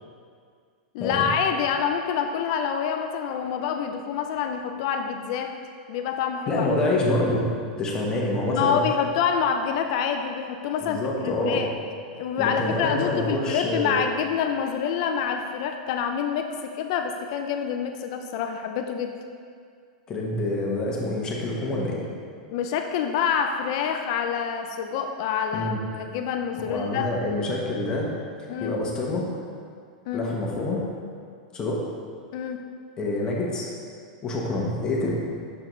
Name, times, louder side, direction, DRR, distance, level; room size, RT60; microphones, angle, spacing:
voice 1, 0.9-5.6 5.9-6.7 8.5-11.7 12.1-19.1 22.5-27.1 28.5-28.8 30.1-30.3 32.3-32.6, left 7 dB, 45° left, 5 dB, 0.5 m, -27 dB
voice 2, 6.5-7.5 7.8-8.8 10.8-11.6 12.4-14.0 20.1-22.0 25.5-25.8 26.6-28.1 28.4-29.3 30.1-30.8 31.5-31.8 33.0-33.7 34.2-35.1, left 2 dB, 20° left, -3 dB, 1.1 m, -26 dB
8.5 x 6.7 x 3.2 m, 2.2 s
supercardioid pair, 160°, 4 cm